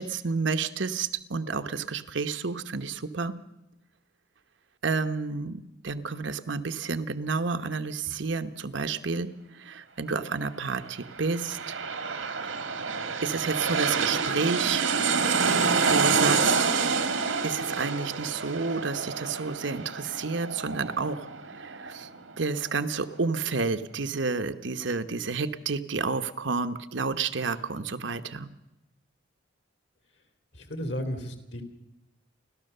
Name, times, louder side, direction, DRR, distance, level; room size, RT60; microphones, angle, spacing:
voice 1, 0.0-3.4 4.8-9.3 9.5-11.8 13.2-14.9 15.9-16.5 17.4-21.2 21.5-22.1 22.4-28.5, right 4 dB, 70° right, 10 dB, 1.0 m, -30 dB
sound 1, 11.0-22.4 22.8-22.9, right 5 dB, 85° right, 1.8 m, -28 dB
voice 2, 30.5-31.6, equal, 60° left, 7 dB, 2.8 m, -34 dB
29.5 x 13.0 x 6.7 m, 0.93 s
head